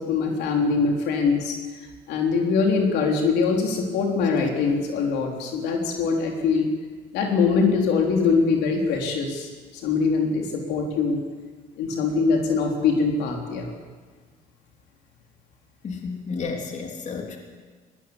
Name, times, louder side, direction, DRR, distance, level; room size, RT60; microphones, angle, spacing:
voice 1, 0.0-1.6 2.1-6.7 7.1-9.5 9.8-11.2 11.8-13.7, left 4 dB, 85° left, 1 dB, 3.7 m, -23 dB
voice 2, 15.8-17.4, left 4 dB, 45° left, 2 dB, 3.5 m, -32 dB
20.5 x 18.0 x 8.1 m, 1.5 s
cardioid pair, 110°, 17 cm